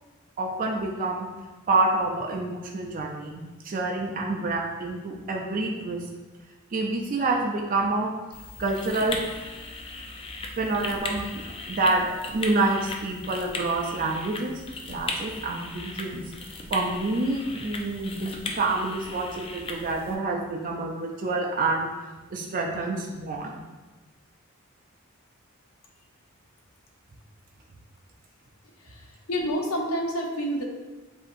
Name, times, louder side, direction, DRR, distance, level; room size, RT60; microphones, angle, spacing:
voice 1, 0.4-1.3 1.7-6.1 6.7-8.1 8.6-9.2 10.6-12.1 12.3-14.5 14.9-16.2 16.7-21.9 22.3-23.6, right 2 dB, 40° right, 0 dB, 0.4 m, -27 dB
sound 1, 8.3-20.1, left 2 dB, 25° left, 0.5 m, -37 dB
voice 2, 28.8-30.6, equal, 90° left, 2 dB, 0.8 m, -29 dB
7.6 x 2.8 x 2.5 m, 1.2 s
head